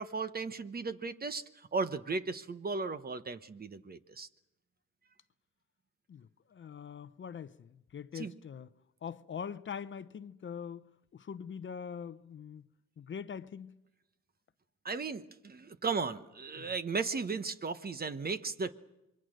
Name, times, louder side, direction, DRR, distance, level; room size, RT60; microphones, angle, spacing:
voice 1, 0.0-1.4 1.7-4.3 8.1-8.3 14.8-18.7, right 4 dB, 30° right, 1.1 m, -36 dB
voice 2, 6.1-8.7 9.0-12.7 13.0-13.8 16.6-16.7, left 7 dB, 40° left, 0.8 m, -43 dB
26.0 x 23.0 x 6.5 m
cardioid pair, 90°, 30 cm